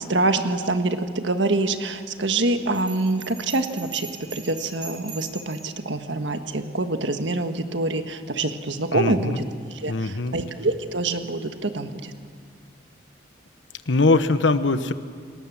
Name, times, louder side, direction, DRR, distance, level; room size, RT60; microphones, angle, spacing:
voice 1, 0.0-12.1, right 2 dB, 75° right, 8 dB, 1.5 m, -26 dB
Bell, 2.7-5.7, right 4 dB, 25° right, 6.4 m, -41 dB
voice 2, 8.9-9.4 9.9-10.4 13.9-14.9, left 3 dB, 80° left, 11 dB, 1.0 m, -21 dB
28.5 x 19.0 x 7.4 m, 2.1 s
head